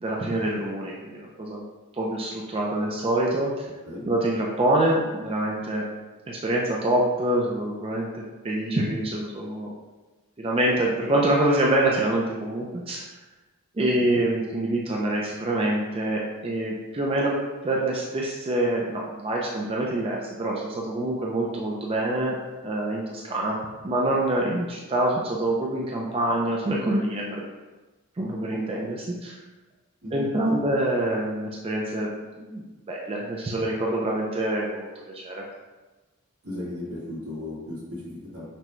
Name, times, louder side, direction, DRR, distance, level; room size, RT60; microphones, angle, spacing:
voice 1, 0.0-1.6 1.9-3.7 4.1-5.8 6.3-9.7 10.4-13.1 13.7-17.4 17.6-22.4 22.6-23.6 23.8-27.4 28.2-29.4 30.1-32.1 32.4-35.4, right 1 dB, 25° right, -3 dB, 0.4 m, -26 dB
voice 2, 30.0-30.6 36.4-38.4, left 1 dB, 85° right, -6 dB, 1.5 m, -36 dB
5.9 x 2.2 x 3.0 m, 1.2 s
head